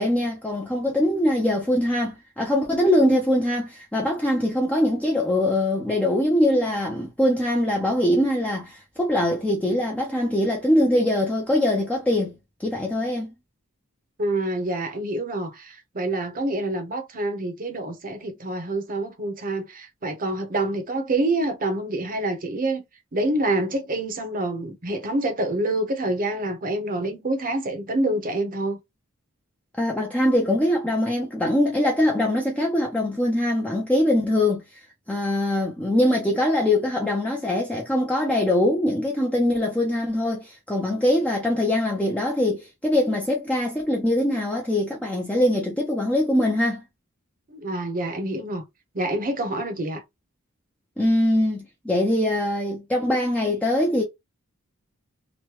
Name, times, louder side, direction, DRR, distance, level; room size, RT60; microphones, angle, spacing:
voice 1, 0.0-13.3 29.8-34.8 35.1-46.8 51.0-54.0, left 1 dB, 5° left, 0.5 m, -22 dB
voice 2, 14.2-22.8 23.1-28.8 47.5-48.6 48.9-50.0, right 2 dB, 40° right, 0.8 m, -27 dB
3.0 x 2.1 x 3.1 m
head